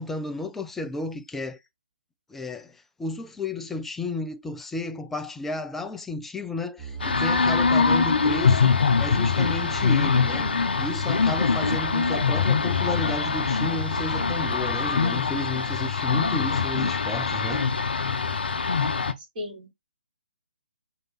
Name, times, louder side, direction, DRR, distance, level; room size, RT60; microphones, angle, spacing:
voice 1, 0.0-1.6 2.3-10.5 10.8-17.6, left 2 dB, 5° left, 0.3 m, -33 dB
sound 1, 6.8-15.2, right 5 dB, 15° right, 1.2 m, -38 dB
sound 2, 7.0-19.1, left 5 dB, 65° left, 0.6 m, -23 dB
voice 2, 19.2-19.7, left 2 dB, 35° right, 2.6 m, -36 dB
6.2 x 2.8 x 2.9 m
figure-of-eight pair, 135°, 6 cm